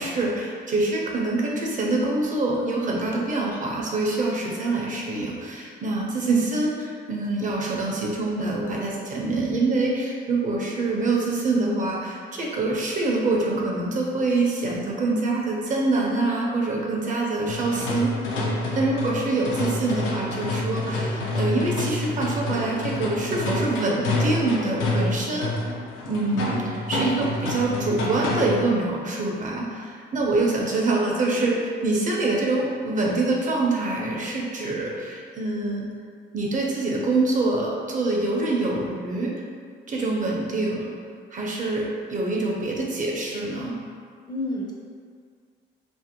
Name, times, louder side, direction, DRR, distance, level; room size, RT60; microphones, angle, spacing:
voice 1, 0.0-18.3 18.7-25.7 26.1-35.9 36.3-39.3 39.9-40.9 41.3-43.8, right 2 dB, 40° right, -2 dB, 0.5 m, -25 dB
sound 1, 17.5-28.7, left 2 dB, 90° left, 0.5 m, -28 dB
voice 2, 44.3-44.7, left 1 dB, 20° left, -4 dB, 0.4 m, -31 dB
2.5 x 2.0 x 2.8 m, 2.1 s
cardioid pair, 90°, 20 cm